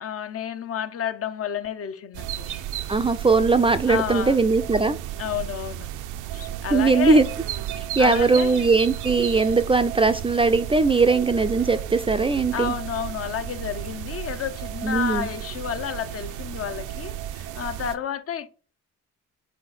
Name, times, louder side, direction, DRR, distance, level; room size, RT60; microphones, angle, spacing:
voice 1, 0.0-2.7 3.9-4.4 5.2-5.9 6.3-7.2 8.0-8.7 12.5-18.5, left 9 dB, 50° left, 0.6 m, -31 dB
sound 1, 2.1-18.0, right 11 dB, 85° right, 0.6 m, -33 dB
voice 2, 2.9-5.0 6.7-7.3 8.0-12.7 14.8-15.3, right 4 dB, 20° right, 0.4 m, -20 dB
4.3 x 4.2 x 5.6 m
cardioid pair, 90°, 30 cm